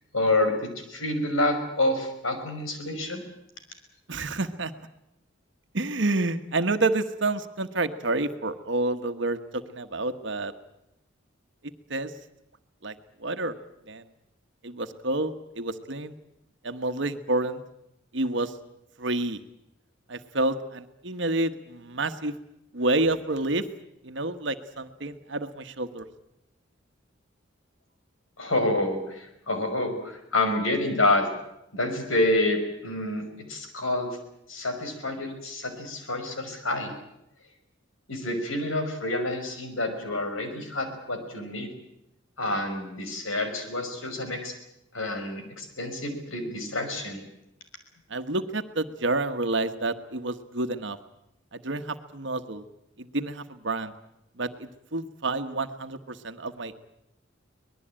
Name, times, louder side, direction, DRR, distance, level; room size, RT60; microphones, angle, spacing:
voice 1, 0.1-3.2 28.4-31.3 31.7-34.2 34.5-36.9 38.1-41.7 42.4-44.5 44.9-47.3, left 2 dB, 90° left, 6 dB, 5.7 m, -28 dB
voice 2, 4.1-4.7 5.7-9.4 9.7-10.5 11.9-12.1 12.8-12.9 13.2-13.5 13.9-14.0 14.6-16.1 16.6-17.6 18.1-18.5 19.0-19.4 20.1-22.3 22.7-23.6 24.0-26.0 48.1-51.0 51.5-52.6 53.0-53.9 54.4-56.7, right 2 dB, 65° right, 9 dB, 1.3 m, -29 dB
24.5 x 20.0 x 8.9 m, 0.84 s
head